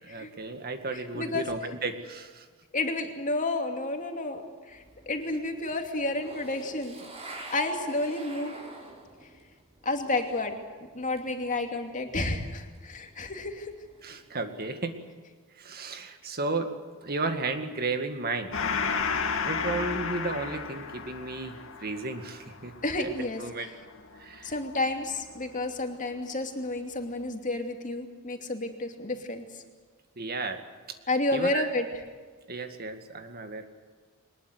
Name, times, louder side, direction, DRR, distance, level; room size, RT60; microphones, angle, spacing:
voice 1, 0.0-2.5 14.0-14.9 15.5-16.7 17.0-18.5 19.1-22.7 23.0-23.7 24.2-24.5 30.2-30.6 30.9-31.0 31.3-31.7 32.5-33.7, right 3 dB, 45° right, 7 dB, 2.0 m, -33 dB
voice 2, 0.9-1.5 2.7-4.4 4.7-7.0 7.5-8.5 9.8-10.5 10.9-13.7 22.8-23.4 24.4-29.6 31.1-31.9, left 2 dB, 35° left, 4 dB, 2.6 m, -31 dB
sound 1, 4.7-10.6 10.9-14.6, right 2 dB, 30° right, 5.9 m, -48 dB
Gong, 18.5-25.5, left 5 dB, 65° left, 2.6 m, -33 dB
22.5 x 20.5 x 8.0 m, 1.5 s
head